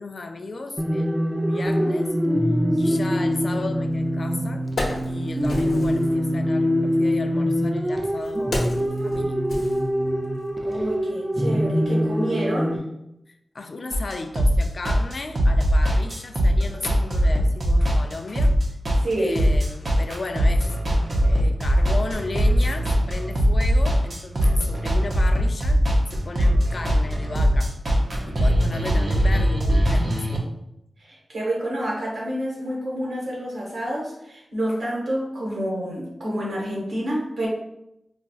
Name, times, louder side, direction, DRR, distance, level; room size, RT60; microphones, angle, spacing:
voice 1, 0.0-2.1 2.8-4.7 5.1-9.4 13.3-18.6 19.2-27.8 28.3-30.5, left 3 dB, 50° left, 6 dB, 0.3 m, -35 dB
sound 1, 0.8-12.8, equal, 20° right, 0.4 m, -24 dB
Wood, 3.9-4.0 4.4-6.1 7.1-10.4 10.7-10.9, left 2 dB, 85° left, 0.8 m, -32 dB
voice 2, 10.6-12.8 19.0-19.4 31.0-37.5, right 1 dB, 75° right, -4 dB, 1.2 m, -28 dB
sound 2, 13.9-30.4, equal, 60° right, 0.6 m, -21 dB
4.1 x 2.3 x 2.3 m, 0.82 s
wide cardioid pair, 90°, 0 cm